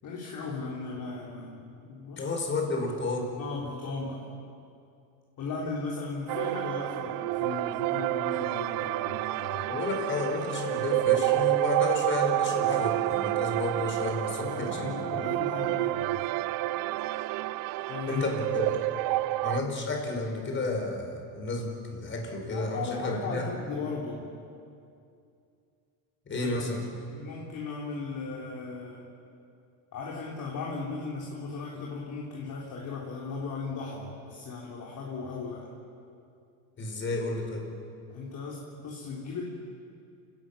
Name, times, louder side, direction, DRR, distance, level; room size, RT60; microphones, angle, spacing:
voice 1, 0.0-2.3 3.4-4.3 5.4-9.6 14.4-16.2 17.9-18.2 22.5-24.3 26.3-26.6 27.1-29.1 29.9-35.7 38.1-39.4, left 4 dB, 45° left, -3 dB, 3.9 m, -37 dB
voice 2, 2.2-3.3 9.7-15.2 18.1-18.8 19.4-23.5 26.3-26.8 36.8-37.7, left 2 dB, 25° left, 2 dB, 5.1 m, -31 dB
sound 1, 6.3-19.6, right 17 dB, 50° right, 0.5 m, -29 dB
29.0 x 18.5 x 7.2 m, 2.5 s
cardioid pair, 135°, 44 cm